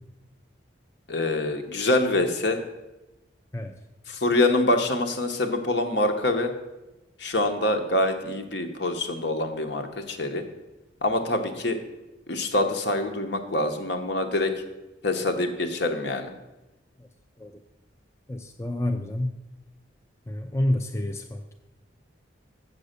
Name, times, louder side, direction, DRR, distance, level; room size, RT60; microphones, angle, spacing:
voice 1, 1.1-2.6 4.1-6.5 7.2-10.4 11.0-11.8 12.3-14.5 15.0-16.3, left 2 dB, 60° left, 6 dB, 1.0 m, -25 dB
voice 2, 18.3-19.3 20.3-21.5, left 1 dB, 15° left, 4 dB, 0.4 m, -28 dB
7.6 x 6.7 x 6.6 m, 1.0 s
head